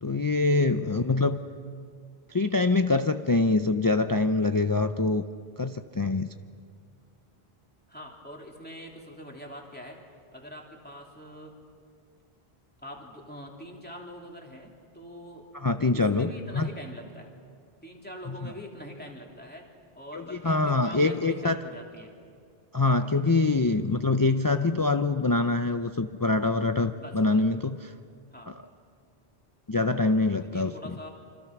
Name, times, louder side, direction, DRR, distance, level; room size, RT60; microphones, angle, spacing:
voice 1, 0.0-1.4 2.3-5.3 5.6-6.3 15.6-16.7 18.4-18.5 20.2-21.6 22.7-27.9 28.5-28.6 29.7-30.7, left 3 dB, 25° left, 8 dB, 0.5 m, -24 dB
voice 2, 7.9-10.0 10.3-11.6 12.8-15.5 15.9-17.3 17.8-22.1 23.7-23.9 27.0-27.4 28.3-28.6 30.3-31.1, equal, 10° left, -1 dB, 3.2 m, -44 dB
28.0 x 26.0 x 6.0 m, 2.2 s
omnidirectional pair, 1.0 m